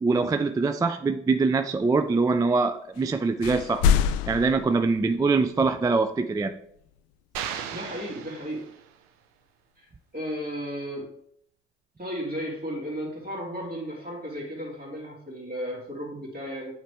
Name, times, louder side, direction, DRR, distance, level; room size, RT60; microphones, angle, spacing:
voice 1, 0.0-3.8 4.3-6.5, right 4 dB, 10° right, 9 dB, 0.3 m, -23 dB
sound 1, 2.9-3.1 3.4-5.5, left 7 dB, 65° left, 0.5 m, -25 dB
sound 2, 7.3-9.1, right 8 dB, 75° right, 0.6 m, -36 dB
voice 2, 7.7-8.7 9.8-11.1 12.0-16.7, equal, 30° right, -3 dB, 2.5 m, -34 dB
8.9 x 3.2 x 3.4 m, 0.69 s
figure-of-eight pair, 45°, 32 cm